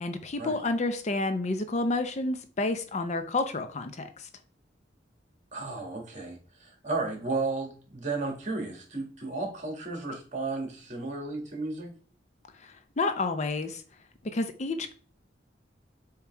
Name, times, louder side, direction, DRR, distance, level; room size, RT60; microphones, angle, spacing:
voice 1, 0.0-4.3 12.5-13.8 14.2-14.9, left 2 dB, 40° left, 9 dB, 0.6 m, -30 dB
voice 2, 5.5-11.9, right 3 dB, 40° right, 1 dB, 1.9 m, -33 dB
7.0 x 3.1 x 4.6 m, 0.40 s
head